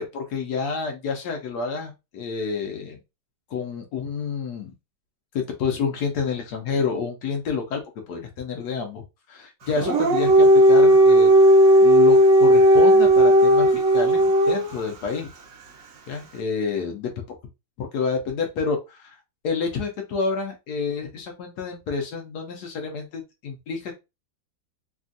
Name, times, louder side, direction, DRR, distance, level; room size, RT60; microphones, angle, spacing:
voice 1, 0.0-3.0 3.5-4.7 5.3-9.0 9.3-11.3 11.8-15.3 16.1-17.1 17.8-19.2 19.4-23.9, left 5 dB, 70° left, 4 dB, 1.1 m, -29 dB
Dog, 9.7-14.9, right 1 dB, 55° right, 0.9 m, -15 dB
3.3 x 2.3 x 2.6 m, 0.25 s
omnidirectional pair, 2.0 m